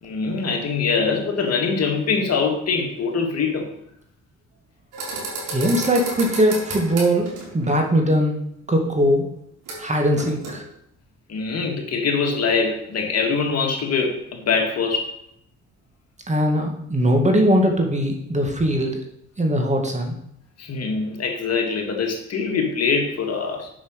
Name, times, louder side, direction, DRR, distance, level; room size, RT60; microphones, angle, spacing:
voice 1, 0.0-3.7 11.3-15.1 20.6-23.7, left 5 dB, 55° left, 2 dB, 2.1 m, -23 dB
sound 1, 4.9-7.7 9.7-9.8 10.2-10.5, right 3 dB, 80° right, 3.7 m, -32 dB
voice 2, 5.5-8.3 8.7-9.2 9.8-10.6 16.3-19.0 19.4-20.1, equal, 25° right, 2 dB, 2.1 m, -20 dB
7.3 x 6.2 x 6.4 m, 0.73 s
cardioid pair, 90°, 30 cm